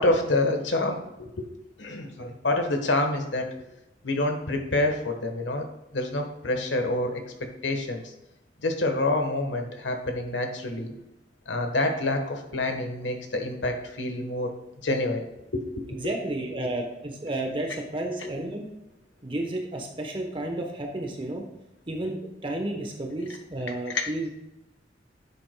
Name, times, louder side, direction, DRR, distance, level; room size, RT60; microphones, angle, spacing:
voice 1, 0.0-1.5 1.8-3.5 4.0-5.7 5.9-7.2 7.6-8.1 8.6-10.9 11.5-14.5 14.8-15.2 15.5-15.8 18.2-18.3 23.9-24.1, left 2 dB, 90° left, 5 dB, 1.3 m, -27 dB
voice 2, 15.9-18.6 19.2-21.4 21.9-24.3, right 1 dB, 30° right, 2 dB, 1.0 m, -32 dB
9.9 x 7.9 x 2.3 m, 0.90 s
head